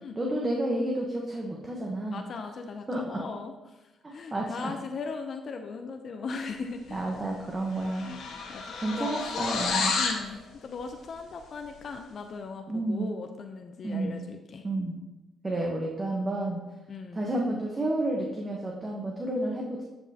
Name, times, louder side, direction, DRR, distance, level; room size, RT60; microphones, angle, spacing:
voice 1, 0.2-2.2 2.9-3.2 4.3-4.7 6.9-8.1 8.8-10.0 12.7-13.1 13.8-14.1 14.6-14.9 15.4-16.6 17.1-19.8, right 1 dB, 25° right, -1 dB, 1.0 m, -30 dB
voice 2, 2.1-3.8 4.1-7.0 8.1-8.6 9.0-9.2 9.9-14.6 16.9-17.4, left 4 dB, 55° left, 5 dB, 0.6 m, -38 dB
sound 1, 7.1-7.3 7.5-10.3, left 4 dB, 80° left, 1.4 m, -30 dB
10.5 x 5.3 x 2.8 m, 1.0 s
cardioid pair, 90°, 0 cm